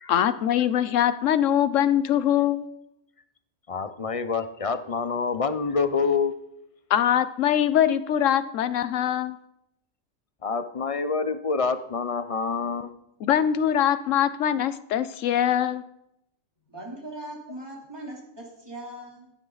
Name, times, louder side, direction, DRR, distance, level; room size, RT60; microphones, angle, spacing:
voice 1, 0.1-2.7 6.9-9.4 13.2-15.8, left 10 dB, 75° left, 14 dB, 1.1 m, -23 dB
voice 2, 3.7-6.3 10.4-12.9, left 5 dB, 35° left, 10 dB, 0.6 m, -27 dB
voice 3, 16.7-19.3, right 1 dB, 20° right, -2 dB, 3.3 m, -40 dB
14.5 x 9.9 x 4.0 m, 0.81 s
omnidirectional pair, 1.4 m